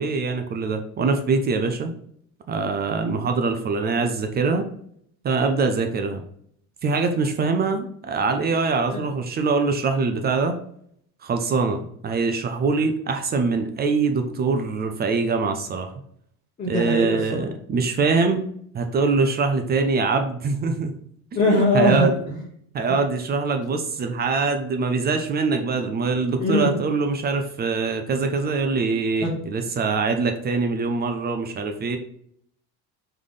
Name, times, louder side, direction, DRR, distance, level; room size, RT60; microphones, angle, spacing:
voice 1, 0.0-1.9 2.5-4.7 5.2-6.2 6.8-10.6 11.2-15.9 16.7-18.5 18.7-20.9 21.7-22.2 22.7-32.0, right 4 dB, 25° right, 6 dB, 0.4 m, -23 dB
voice 2, 16.6-17.4 21.3-22.4 26.4-26.7 29.2-29.3, left 1 dB, 20° left, -5 dB, 1.1 m, -21 dB
3.6 x 3.3 x 3.8 m, 0.67 s
cardioid pair, 130°, 38 cm